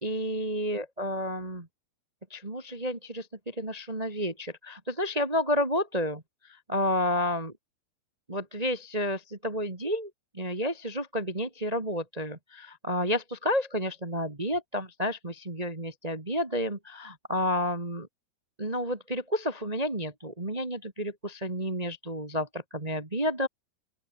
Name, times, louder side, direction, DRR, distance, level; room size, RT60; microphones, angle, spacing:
voice 1, 0.0-1.7 2.3-6.2 6.7-7.5 8.3-18.1 18.6-23.5, equal, 60° right, 0.4 m, -31 dB
open air
omnidirectional pair, 5.0 m